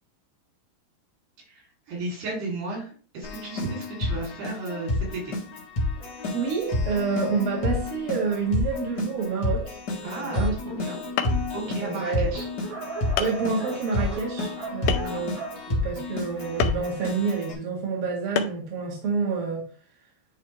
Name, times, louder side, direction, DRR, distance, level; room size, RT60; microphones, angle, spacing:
voice 1, 1.5-5.2 10.0-11.0 11.5-12.5 14.8-15.2, right 2 dB, 85° right, 4.6 m, -34 dB
Keyboard (musical), 3.2-17.5, left 2 dB, 70° left, 1.0 m, -30 dB
Dog, 5.9-8.9 9.6-9.7 10.0-10.1 10.3-16.7, right 4 dB, 65° right, 4.1 m, -41 dB
voice 2, 6.3-9.8 10.0-10.5 10.9-11.0 11.8-12.3 13.2-15.4 15.7-19.7, right 5 dB, 45° right, 2.1 m, -28 dB
sound 1, 10.8-10.9 11.2-11.6 12.4-12.5 13.2-13.4 14.9-15.3 16.6-16.9 18.4-18.7, left 9 dB, 85° left, 1.8 m, -27 dB
9.7 x 3.3 x 3.1 m
omnidirectional pair, 4.3 m